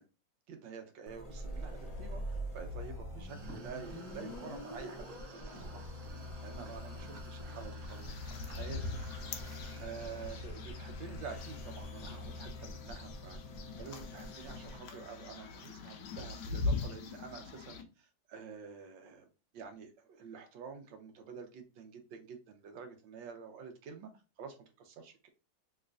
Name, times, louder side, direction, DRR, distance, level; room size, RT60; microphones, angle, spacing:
voice 1, 0.5-5.9 6.2-8.9 9.8-13.4 13.8-19.3 19.5-24.1 24.4-25.3, right 6 dB, 75° right, 1.4 m, -48 dB
sound 1, 1.1-14.8, left 1 dB, 35° left, 0.6 m, -44 dB
sound 2, 3.3-10.4, right 3 dB, 55° right, 1.0 m, -55 dB
sound 3, 7.9-17.8, left 3 dB, 70° left, 1.1 m, -42 dB
3.5 x 3.1 x 2.4 m
omnidirectional pair, 2.1 m